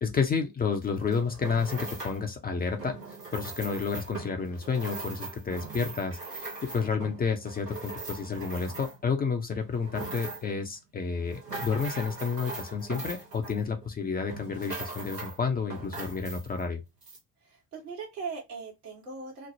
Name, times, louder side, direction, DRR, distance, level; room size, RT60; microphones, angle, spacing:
voice 1, 0.0-3.0 3.3-16.8, left 5 dB, 20° left, 0.5 m, -30 dB
sound 1, 0.8-2.3 2.7-9.2 9.6-10.6 11.1-13.9 14.3-15.4 15.7-16.7 17.0-17.2, right 3 dB, 90° right, 0.9 m, -40 dB
voice 2, 17.4-19.5, right 5 dB, 75° right, 1.3 m, -39 dB
3.2 x 2.0 x 2.6 m
figure-of-eight pair, 50°, 46 cm